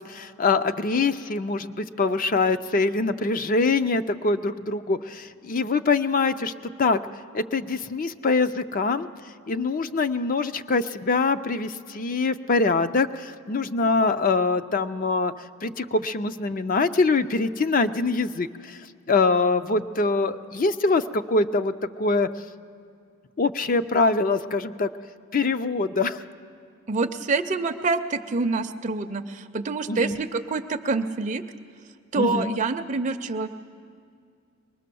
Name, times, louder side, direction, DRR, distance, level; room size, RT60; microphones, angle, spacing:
voice 1, 0.0-7.0 7.3-9.1 9.5-15.3 15.6-18.8 19.1-22.3 23.4-24.9 25.3-26.2 29.9-30.2 32.2-32.6, left 3 dB, 40° left, 11 dB, 0.5 m, -24 dB
voice 2, 26.9-31.4 32.1-33.5, right 3 dB, 35° right, 8 dB, 0.5 m, -26 dB
23.0 x 20.0 x 6.9 m, 2.2 s
head